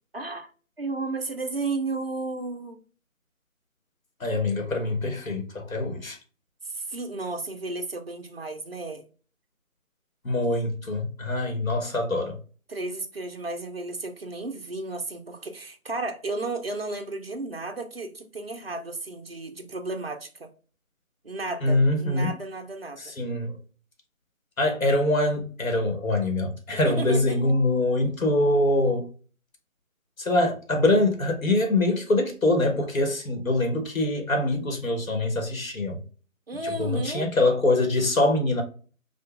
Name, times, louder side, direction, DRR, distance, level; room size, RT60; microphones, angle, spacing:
voice 1, 0.1-0.5 0.8-2.8 6.6-9.0 12.7-20.5 21.2-23.1 26.7-27.5 36.5-37.3, right 2 dB, 45° right, 0.5 m, -33 dB
voice 2, 4.2-6.2 10.2-12.4 21.6-22.3 23.0-23.6 24.6-29.1 30.2-36.0 36.6-38.6, left 2 dB, 70° left, 1.2 m, -24 dB
4.9 x 2.2 x 2.4 m
figure-of-eight pair, 170°, 42 cm